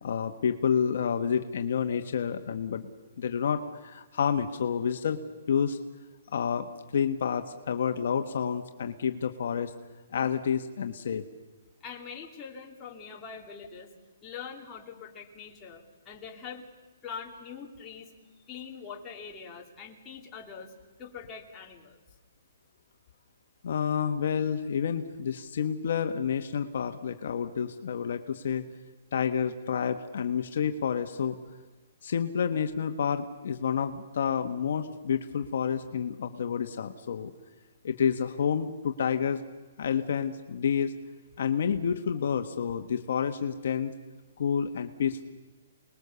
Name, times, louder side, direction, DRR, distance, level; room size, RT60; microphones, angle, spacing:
voice 1, 0.0-2.9 3.2-5.2 5.5-5.8 6.3-6.7 6.9-9.7 10.1-11.2 23.6-28.6 29.1-31.4 32.0-37.3 37.8-39.4 39.8-40.9 41.4-43.9 44.4-45.2, left 7 dB, 60° left, 7 dB, 1.3 m, -29 dB
voice 2, 11.8-13.9 14.2-16.7 17.0-18.1 18.5-20.7 21.0-22.0, left 6 dB, 15° left, -1 dB, 2.5 m, -43 dB
28.5 x 20.5 x 7.0 m, 1.3 s
hypercardioid pair, 170°, 0 cm